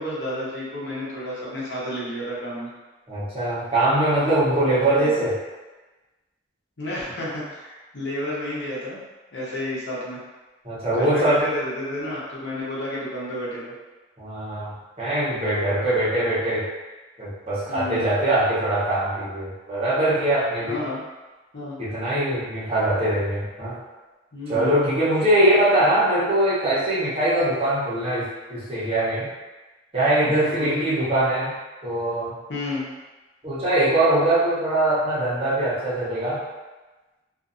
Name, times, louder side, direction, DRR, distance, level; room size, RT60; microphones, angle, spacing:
voice 1, 0.0-2.7 4.6-5.2 6.8-9.0 9.3-10.2 10.9-13.7 17.7-18.1 20.7-21.0 21.5-21.8 24.3-24.9 30.2-30.9 32.5-32.9, left 1 dB, 80° left, -7 dB, 0.9 m, -31 dB
voice 2, 3.1-5.4 10.6-11.4 14.2-16.7 17.2-20.8 21.8-23.8 24.5-29.3 29.9-31.5 31.8-32.3 33.4-36.4, right 1 dB, 35° right, -9 dB, 0.9 m, -22 dB
2.5 x 2.5 x 2.5 m, 1.2 s
head